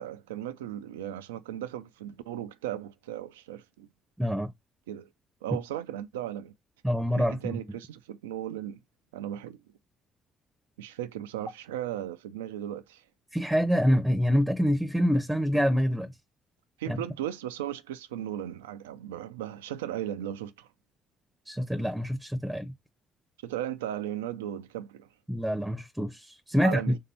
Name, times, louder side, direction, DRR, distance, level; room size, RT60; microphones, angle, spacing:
voice 1, 0.0-3.9 4.9-5.1 5.4-6.5 7.2-8.8 9.1-9.6 10.8-13.0 16.8-20.7 23.4-25.1 26.6-27.0, right 11 dB, 85° right, 0.3 m, -36 dB
voice 2, 4.2-4.5 6.8-7.6 13.3-16.1 16.9-17.0 21.5-22.7 25.3-26.9, equal, 5° right, 0.6 m, -26 dB
3.2 x 2.7 x 4.1 m
hypercardioid pair, 50°, 0 cm